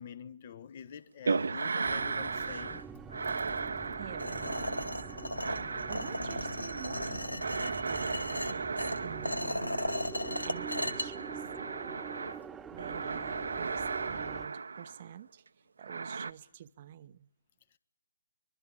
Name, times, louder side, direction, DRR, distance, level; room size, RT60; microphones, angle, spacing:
voice 1, 0.0-2.9, left 8 dB, 35° left, 1.4 m, -46 dB
sound 1, 1.3-2.8 3.1-12.4 12.8-15.1 15.8-16.3, right 4 dB, 60° right, 1.0 m, -36 dB
sound 2, 1.8-14.5, right 6 dB, 10° right, 1.2 m, -46 dB
voice 2, 4.0-5.0 5.9-7.4 7.8-9.7 10.4-11.4 12.7-15.4 15.8-17.3, right 10 dB, 35° right, 0.9 m, -48 dB
sound 3, 4.2-11.1, left 1 dB, 90° left, 2.4 m, -36 dB
24.0 x 23.5 x 8.5 m
figure-of-eight pair, 140°, 0 cm